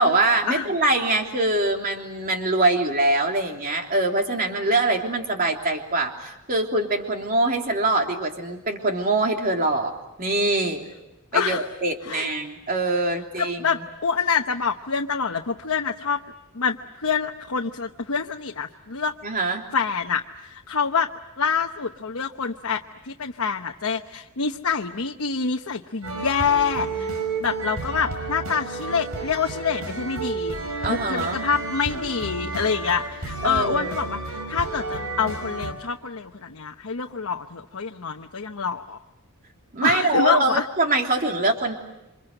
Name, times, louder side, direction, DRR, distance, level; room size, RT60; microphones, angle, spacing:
voice 1, 0.0-9.9 10.2-10.9 11.3-13.8 19.2-19.6 30.8-31.4 33.4-34.0 39.7-41.7, right 2 dB, 40° right, 2 dB, 3.4 m, -23 dB
voice 2, 13.4-16.2 16.5-16.8 17.0-19.1 19.7-21.1 21.4-27.1 27.4-30.6 30.9-39.0 39.8-40.6, left 6 dB, 65° left, 3 dB, 1.0 m, -26 dB
sound 1, 26.0-35.7, right 3 dB, 75° right, 5.7 m, -31 dB
28.5 x 25.5 x 7.9 m, 0.93 s
head